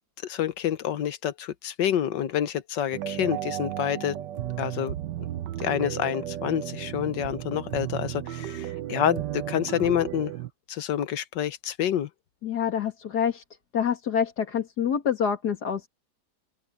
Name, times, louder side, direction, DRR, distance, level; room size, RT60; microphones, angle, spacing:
voice 1, 0.2-4.2 4.6-4.9 5.6-10.3 10.7-12.1, left 10 dB, 85° left, 1.7 m, -28 dB
sound 1, 2.9-10.5, right 12 dB, 85° right, 1.4 m, -34 dB
voice 2, 12.4-13.4 13.7-15.9, left 7 dB, 65° left, 2.6 m, -26 dB
open air
omnidirectional pair, 1.9 m